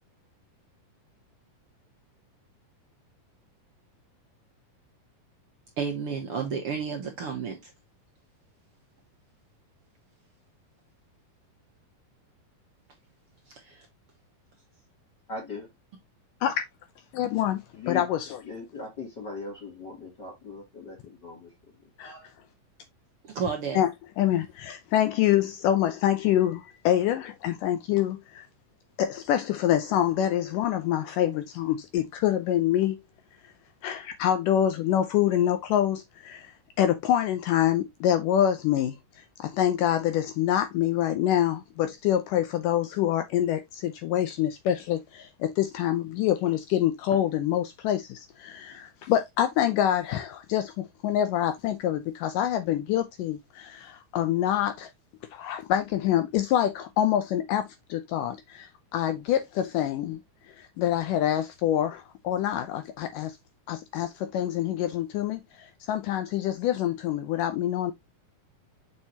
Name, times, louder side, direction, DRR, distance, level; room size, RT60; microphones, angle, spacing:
voice 1, 5.8-7.7 13.5-13.9 23.2-23.8, right 6 dB, 60° right, 1.5 m, -31 dB
voice 2, 15.3-15.7 17.7-18.1 18.4-21.5 22.0-22.3, left 4 dB, 30° left, 3.0 m, -39 dB
voice 3, 17.1-17.6 17.9-18.4 22.0-22.1 23.7-23.9 24.2-28.5 29.0-33.0 33.8-54.9 55.3-60.2 60.5-63.4 63.7-67.9, left 11 dB, 75° left, 2.0 m, -26 dB
6.5 x 6.4 x 2.8 m
omnidirectional pair, 4.3 m